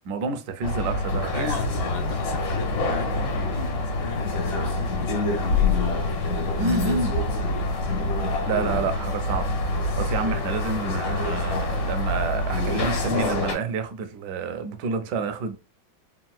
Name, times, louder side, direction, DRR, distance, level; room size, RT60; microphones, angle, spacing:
voice 1, 0.1-1.6 6.6-7.1 8.4-9.5 10.0-15.6, right 4 dB, 75° right, 1.0 m, -28 dB
sound 1, 0.6-13.6, left 2 dB, 65° left, 1.6 m, -26 dB
voice 2, 1.3-6.2 7.3-8.0, left 4 dB, 80° left, 1.4 m, -36 dB
3.7 x 2.2 x 2.3 m
omnidirectional pair, 2.2 m